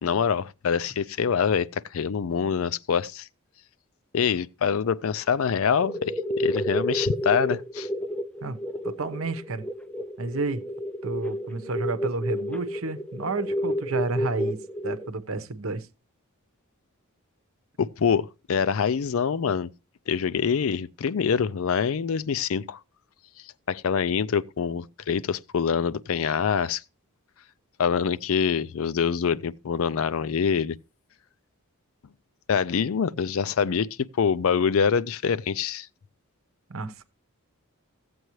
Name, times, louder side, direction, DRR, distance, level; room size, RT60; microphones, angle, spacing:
voice 1, 0.0-3.3 4.1-7.9 17.8-19.7 20.1-22.8 23.7-26.8 27.8-30.8 32.5-35.9, left 6 dB, 65° left, 0.4 m, -25 dB
sound 1, 5.3-5.5 5.8-15.1, equal, 5° left, 0.4 m, -31 dB
voice 2, 8.8-9.6 10.2-10.6 11.0-15.9 36.7-37.0, right 3 dB, 65° right, 1.0 m, -31 dB
15.5 x 7.8 x 3.1 m
head